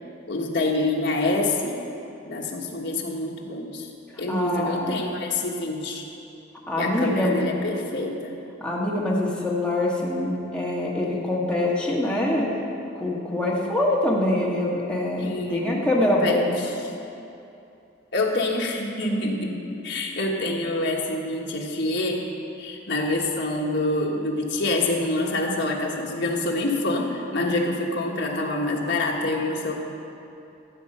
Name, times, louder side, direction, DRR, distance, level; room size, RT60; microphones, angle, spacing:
voice 1, 0.3-1.8 2.2-3.9 4.2-6.0 6.8-8.3 15.2-16.7 18.1-22.2 22.6-29.7, left 2 dB, 55° left, -1 dB, 1.4 m, -26 dB
voice 2, 4.1-5.0 6.7-7.5 8.6-12.5 12.9-16.8, left 1 dB, 5° left, -5 dB, 1.5 m, -24 dB
14.0 x 7.5 x 5.5 m, 2.7 s
head